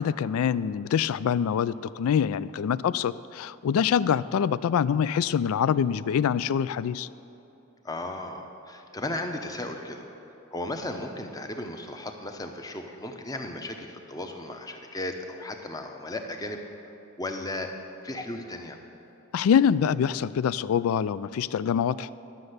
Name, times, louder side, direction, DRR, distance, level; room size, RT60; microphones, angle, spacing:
voice 1, 0.0-7.1 19.3-22.1, left 8 dB, 80° left, 18 dB, 0.3 m, -25 dB
voice 2, 7.8-10.0 10.5-16.6 17.2-17.7 18.0-18.8, left 1 dB, 15° left, 4 dB, 0.8 m, -35 dB
12.0 x 6.6 x 7.9 m, 2.9 s
head